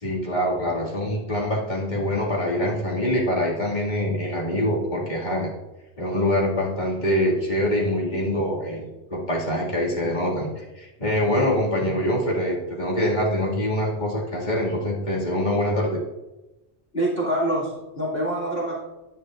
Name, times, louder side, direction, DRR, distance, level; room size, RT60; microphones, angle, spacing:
voice 1, 0.0-5.5 6.0-16.0, left 1 dB, 40° left, -4 dB, 2.4 m, -24 dB
voice 2, 16.9-18.7, right 1 dB, 55° left, -6 dB, 2.4 m, -25 dB
10.5 x 9.7 x 2.5 m, 1.0 s
omnidirectional pair, 1.2 m